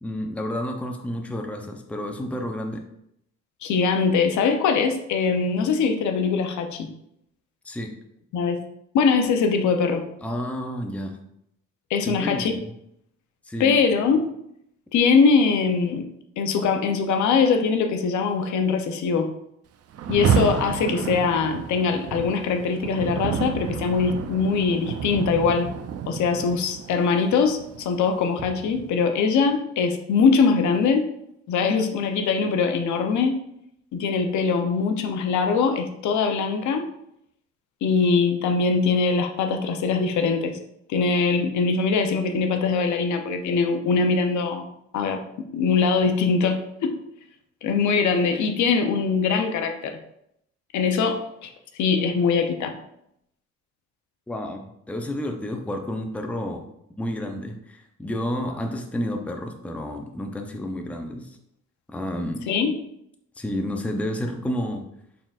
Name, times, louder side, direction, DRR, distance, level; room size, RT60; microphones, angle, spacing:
voice 1, 0.0-2.8 7.6-7.9 10.2-11.2 12.0-12.7 13.5-13.8 54.3-56.6 57.0-61.4 61.9-62.4 63.4-64.8, left 1 dB, 5° left, 3 dB, 0.5 m, -30 dB
voice 2, 3.6-6.9 8.3-8.6 8.9-10.0 11.9-12.5 13.6-14.3 14.9-16.0 16.4-19.3 20.1-25.7 26.1-31.1 31.5-33.4 33.9-36.9 37.8-40.6 40.9-44.7 44.9-47.0 47.6-50.0 50.7-52.7 62.5-62.8, left 5 dB, 70° left, 5 dB, 0.6 m, -22 dB
Rain, 19.9-29.0, right 7 dB, 55° right, 0.4 m, -29 dB
4.2 x 3.8 x 2.3 m, 0.77 s
cardioid pair, 90°, 30 cm